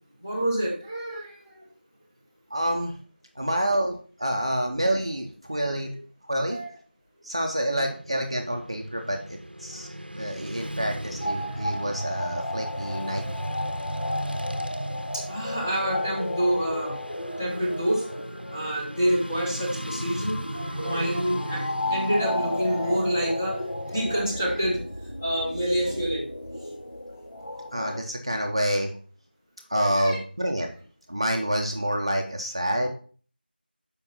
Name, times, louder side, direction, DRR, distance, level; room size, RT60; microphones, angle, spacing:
voice 1, 0.2-1.7 6.5-6.7 15.1-17.0 17.4-18.0 18.5-24.8 25.2-26.3 29.7-30.2 32.8-32.9, equal, 10° left, -3 dB, 1.1 m, -27 dB
voice 2, 2.5-3.0 3.3-6.0 6.2-6.6 7.2-13.4 27.7-29.0 29.7-30.7 31.1-32.9, equal, 30° right, 2 dB, 0.7 m, -28 dB
Motorcycle / Traffic noise roadway noise, 7.7-24.4, right 1 dB, 65° right, 0.8 m, -37 dB
sound 1, 11.2-28.0, left 1 dB, 60° left, 1.3 m, -34 dB
6.3 x 5.3 x 5.2 m, 0.42 s
figure-of-eight pair, 175°, 6 cm